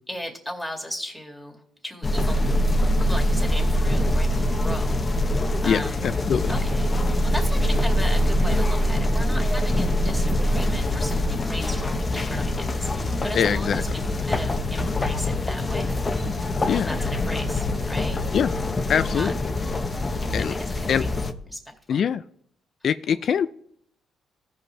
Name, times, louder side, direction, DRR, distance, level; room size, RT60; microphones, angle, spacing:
voice 1, 0.1-2.4 3.0-6.1 6.5-15.9 16.7-18.2 19.0-19.3 20.0-21.1 21.5-21.6 21.9-22.1 23.1-23.2, left 1 dB, ahead, 1 dB, 2.4 m, -36 dB
sound 1, 2.0-21.3, left 1 dB, 25° left, 0.9 m, -24 dB
voice 2, 5.6-6.5 13.3-13.8 16.7-16.9 18.3-18.5 18.9-19.3 20.3-20.5 20.9-21.0 21.9-22.2 22.8-23.5, left 8 dB, 60° left, 11 dB, 0.3 m, -23 dB
15.5 x 5.3 x 3.2 m, 0.65 s
cardioid pair, 90°, 0 cm